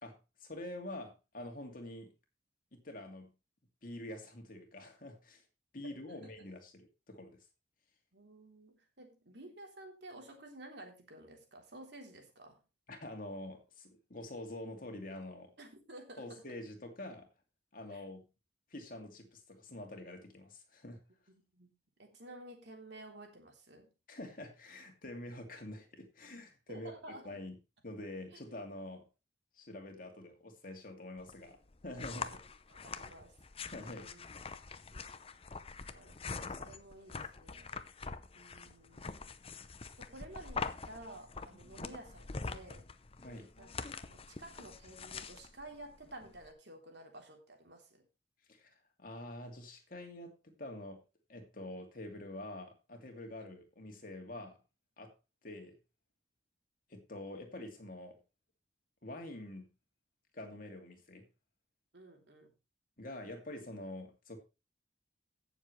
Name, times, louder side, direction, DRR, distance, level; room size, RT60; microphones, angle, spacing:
voice 1, 0.0-2.1 2.7-3.3 3.8-5.4 5.7-7.4 12.9-15.5 16.2-17.3 17.7-18.3 18.7-21.0 24.1-26.9 27.2-27.5 27.8-29.1 29.6-32.4 33.7-34.2 43.2-43.5 48.5-51.0 51.3-54.6 55.0-55.1 55.4-55.8 56.9-58.2 59.0-59.7 60.3-61.3 63.0-64.4, left 1 dB, 50° left, 4 dB, 2.6 m, -46 dB
voice 2, 8.1-12.6 15.6-16.5 17.9-18.0 21.5-21.7 22.0-23.9 26.7-27.4 28.3-28.4 32.2-32.4 32.7-33.3 33.8-34.3 34.8-35.1 35.9-37.7 38.3-39.3 40.0-42.8 43.6-48.1 61.9-62.5, right 1 dB, 65° right, 2 dB, 3.5 m, -52 dB
sound 1, 31.2-46.5, left 4 dB, 30° left, 0.6 m, -44 dB
16.5 x 7.1 x 3.2 m, 0.28 s
head